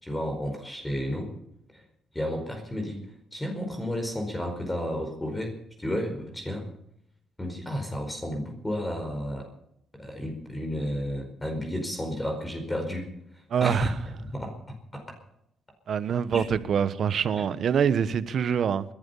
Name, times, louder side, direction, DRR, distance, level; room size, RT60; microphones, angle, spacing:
voice 1, 0.0-1.3 2.1-3.0 3.3-6.7 7.4-9.5 10.0-13.1 13.6-13.9 14.2-15.0 16.3-16.5 17.4-17.5, equal, 15° left, 4.8 m, -32 dB
voice 2, 13.5-13.9 15.9-18.8, right 7 dB, 60° right, 1.1 m, -25 dB
20.5 x 12.0 x 5.6 m
cardioid pair, 90°, 0 cm